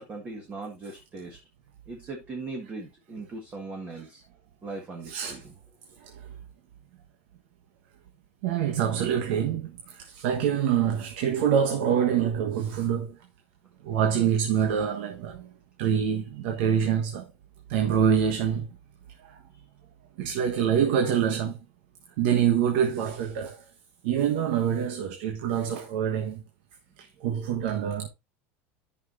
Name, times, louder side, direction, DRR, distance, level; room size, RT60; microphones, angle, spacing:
voice 1, 0.0-1.4 1.9-4.2 4.6-5.5, right 3 dB, 20° right, 1.8 m, -39 dB
voice 2, 5.0-5.4 6.0-6.3 8.4-13.2 13.8-15.5 15.8-17.3 17.7-18.7 19.2-19.4 20.2-21.6 22.2-23.7 24.0-26.4 27.0-28.1, right 8 dB, 70° right, 1.3 m, -26 dB
13.5 x 5.8 x 2.6 m
cardioid pair, 165°, 6 cm